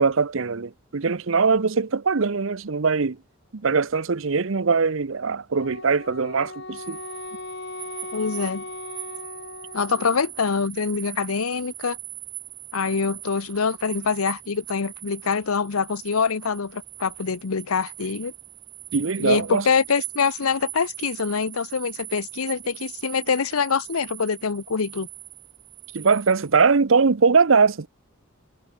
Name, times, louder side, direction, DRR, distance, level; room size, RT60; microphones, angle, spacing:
voice 1, 0.0-3.2 3.5-7.0 18.9-19.6 25.9-27.9, right 5 dB, 65° right, 0.7 m, -21 dB
Wind instrument woodwind instrument, 5.5-10.3, left 2 dB, 55° left, 7.8 m, -38 dB
sound 1, 6.8-26.6, right 17 dB, 80° right, 4.8 m, -40 dB
voice 2, 8.1-8.6 9.7-12.0 12.7-18.3 19.2-25.1, left 5 dB, 90° left, 0.8 m, -25 dB
head